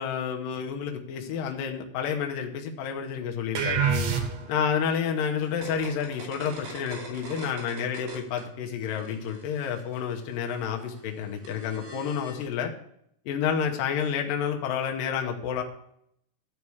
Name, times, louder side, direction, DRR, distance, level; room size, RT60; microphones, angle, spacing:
voice 1, 0.0-3.8 4.5-12.7 13.3-15.6, left 7 dB, 80° left, 2 dB, 2.7 m, -30 dB
sound 1, 3.5-4.7, right 6 dB, 60° right, 2.1 m, -26 dB
sound 2, 5.4-8.4 8.7-12.5, right 3 dB, 90° right, 4.6 m, -44 dB
13.0 x 4.7 x 7.1 m, 0.72 s
omnidirectional pair, 4.0 m